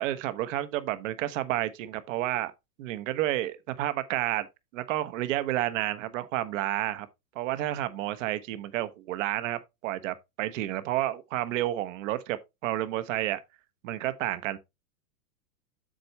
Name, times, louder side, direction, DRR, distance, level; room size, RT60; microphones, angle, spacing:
voice 1, 0.0-2.5 2.8-4.5 4.7-7.1 7.3-13.4 13.8-14.6, right 14 dB, 55° right, 1.2 m, -30 dB
7.8 x 7.0 x 3.2 m
hypercardioid pair, 140°, 47 cm